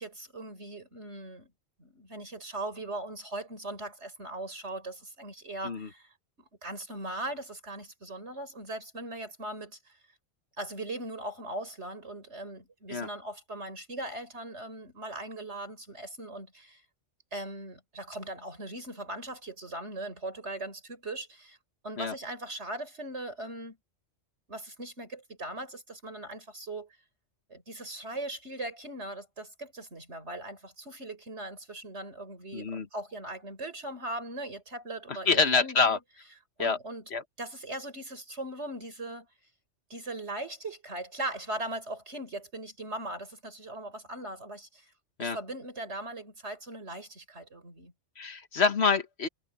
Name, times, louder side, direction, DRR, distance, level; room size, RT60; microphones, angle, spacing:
voice 1, 0.0-1.5 1.8-10.0 10.6-16.8 17.3-21.6 21.8-23.8 24.5-27.0 27.5-36.0 36.6-37.0 37.4-39.3 39.9-44.9 45.2-47.9, right 1 dB, 75° right, 5.4 m, -39 dB
voice 2, 32.5-32.9 35.3-36.0 36.6-36.8 37.1-37.2 45.2-45.4 48.2-49.3, left 5 dB, 65° left, 1.6 m, -26 dB
omnidirectional pair, 1.2 m